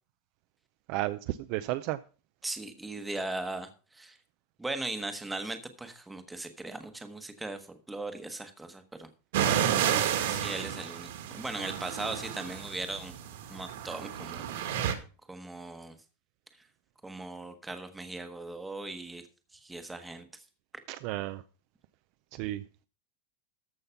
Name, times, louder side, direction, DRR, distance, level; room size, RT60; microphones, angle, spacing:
voice 1, 0.9-2.0 9.3-10.0 20.9-21.4 22.3-22.6, right 16 dB, 40° right, 0.5 m, -33 dB
voice 2, 2.4-4.2 4.6-9.1 10.3-11.1 11.3-13.1 13.5-14.9 15.3-15.9 17.0-19.2 19.6-20.2, right 2 dB, 5° right, 1.1 m, -38 dB
sound 1, 9.3-14.9, right 10 dB, 65° right, 2.0 m, -31 dB
13.5 x 5.6 x 5.7 m
supercardioid pair, 180°, 0 cm